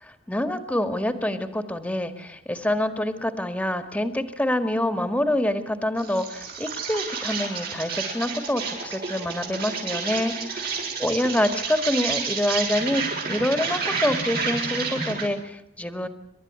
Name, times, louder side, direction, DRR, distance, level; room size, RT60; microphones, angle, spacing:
voice 1, 0.0-16.1, left 1 dB, 5° left, 9 dB, 1.9 m, -26 dB
Insect, 6.0-15.3, right 5 dB, 55° right, 7.0 m, -30 dB
29.0 x 12.5 x 9.6 m, 0.73 s
head